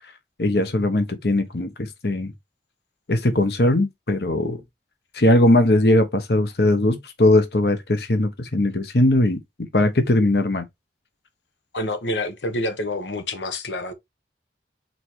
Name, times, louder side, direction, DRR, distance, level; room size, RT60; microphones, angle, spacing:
voice 1, 0.4-1.7 2.0-2.3 3.1-4.6 5.1-9.4 9.7-10.6, left 1 dB, 65° left, 1.2 m, -19 dB
voice 2, 11.7-13.9, left 1 dB, 85° left, 1.3 m, -27 dB
6.8 x 4.5 x 3.2 m
head